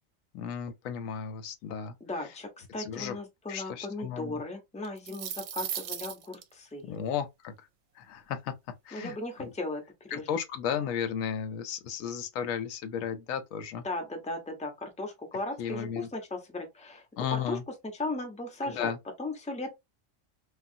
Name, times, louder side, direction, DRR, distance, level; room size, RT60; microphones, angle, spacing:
voice 1, 0.3-1.9 2.8-3.1 3.5-4.4 6.9-7.5 8.0-8.5 8.9-9.5 10.1-13.8 15.6-16.1 17.2-17.6 18.6-19.0, left 8 dB, 85° left, 1.0 m, -34 dB
voice 2, 2.0-7.0 8.9-9.8 10.1-10.4 13.8-18.9 19.2-19.8, left 2 dB, 10° left, 0.5 m, -37 dB
sound 1, 4.8-6.4, right 10 dB, 70° right, 0.8 m, -36 dB
3.2 x 2.3 x 2.6 m
omnidirectional pair, 1.4 m